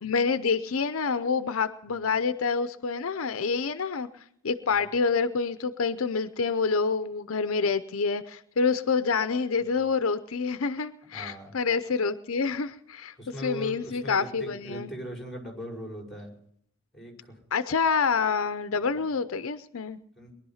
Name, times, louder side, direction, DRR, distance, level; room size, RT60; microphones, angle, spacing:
voice 1, 0.0-4.1 4.4-13.1 13.4-14.9 17.5-20.0, left 5 dB, 70° left, 12 dB, 0.6 m, -27 dB
voice 2, 11.1-11.5 13.2-16.3 16.9-17.4 20.2-20.3, right 1 dB, ahead, 0 dB, 5.5 m, -40 dB
22.0 x 11.0 x 5.7 m, 0.70 s
head